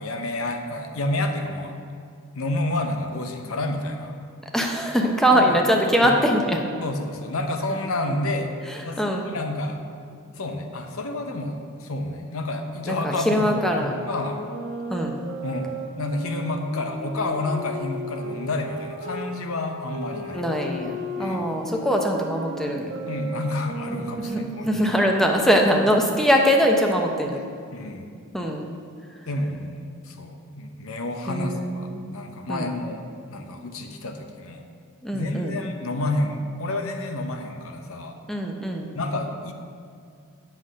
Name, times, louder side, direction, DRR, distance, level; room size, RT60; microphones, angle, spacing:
voice 1, 0.0-1.8 2.3-4.2 5.3-5.5 6.8-8.5 8.8-9.8 10.3-14.4 15.4-20.4 21.2-21.5 23.1-24.8 27.7-28.1 29.3-34.6 35.1-38.2 38.9-39.5, left 2 dB, 65° left, 5 dB, 0.8 m, -29 dB
voice 2, 4.5-6.6 8.7-9.3 12.9-13.9 14.9-15.2 20.3-23.0 24.0-27.4 28.3-28.7 31.3-32.0 32.5-32.7 35.0-35.5 38.3-38.9, equal, ahead, 1 dB, 0.7 m, -22 dB
sound 1, 13.6-19.3 19.9-25.5, right 1 dB, 60° right, 1.1 m, -36 dB
7.7 x 5.9 x 6.3 m, 2.3 s
head